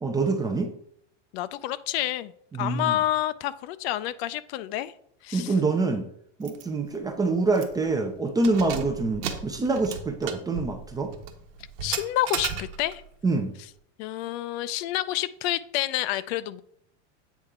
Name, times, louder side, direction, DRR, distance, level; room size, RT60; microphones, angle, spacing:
voice 1, 0.0-0.7 2.5-2.9 5.3-6.1 6.4-11.1 13.2-13.5, right 3 dB, 10° right, 5 dB, 0.4 m, -26 dB
voice 2, 1.3-2.3 2.6-4.9 5.2-5.5 11.8-13.0 14.0-16.6, left 14 dB, 60° left, 15 dB, 0.4 m, -28 dB
Keys jangling, 6.4-6.6 7.0-7.1 7.5-7.9 8.3-13.1, right 7 dB, 85° right, 1.1 m, -35 dB
8.2 x 4.4 x 3.6 m, 0.67 s
supercardioid pair, 140°, 36 cm